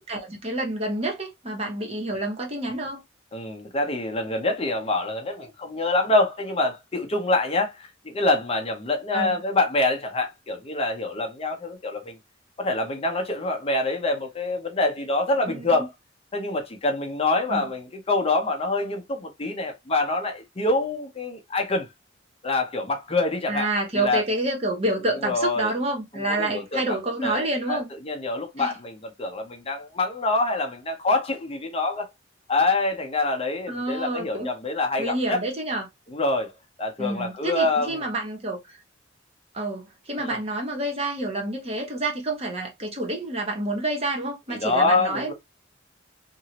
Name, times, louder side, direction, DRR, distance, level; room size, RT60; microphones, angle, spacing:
voice 1, 0.1-3.0 9.1-9.4 15.5-15.8 17.5-17.7 23.5-27.9 28.6-28.8 33.7-34.5 35.0-35.9 37.0-38.8 39.5-45.3, right 2 dB, 35° right, 1.0 m, -28 dB
voice 2, 3.3-12.2 12.6-15.9 16.3-21.9 22.4-23.7 23.9-24.2 25.2-25.7 26.3-26.8 27.2-27.8 28.0-32.1 32.5-35.4 36.1-36.5 36.8-37.9 40.2-40.4 44.5-45.3, left 2 dB, 30° left, 0.7 m, -25 dB
2.9 x 2.6 x 2.8 m
head